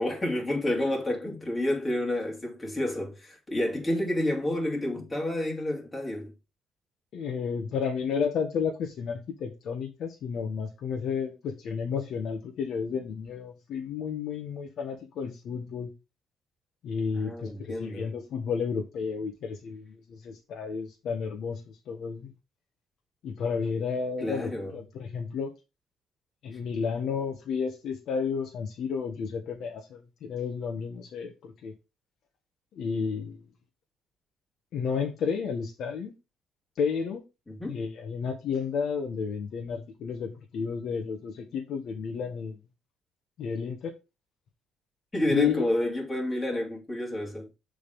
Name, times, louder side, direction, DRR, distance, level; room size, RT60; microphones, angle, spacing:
voice 1, 0.0-6.3 17.1-18.1 24.2-24.7 37.5-37.8 45.1-47.5, left 1 dB, 15° left, 2.6 m, -29 dB
voice 2, 7.1-15.9 16.8-22.3 23.2-25.5 26.4-31.7 32.8-33.4 34.7-36.1 36.8-37.2 37.7-42.6 43.4-43.9 45.3-45.7, left 6 dB, 65° left, 1.2 m, -32 dB
7.0 x 3.9 x 5.3 m
cardioid pair, 110°, 0 cm